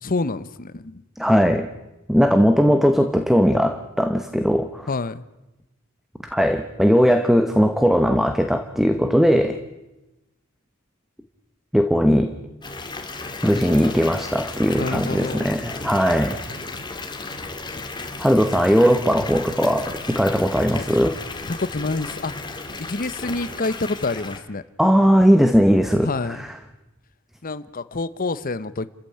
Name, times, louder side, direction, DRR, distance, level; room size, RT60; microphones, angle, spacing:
voice 1, 0.0-1.0 4.9-5.2 14.8-15.5 20.7-20.8 21.5-22.5 22.8-24.6 26.0-26.5 27.4-28.9, left 3 dB, 40° left, 15 dB, 0.9 m, -27 dB
voice 2, 1.2-1.7 2.1-4.9 6.3-9.6 11.7-12.3 13.4-16.4 18.2-21.2 24.8-26.5, equal, ahead, 8 dB, 1.0 m, -18 dB
Water tap faucet / Bathtub (filling or washing) / Fill (with liquid), 12.6-24.4, left 3 dB, 20° left, 2.1 m, -34 dB
30.0 x 14.5 x 8.7 m, 1.0 s
head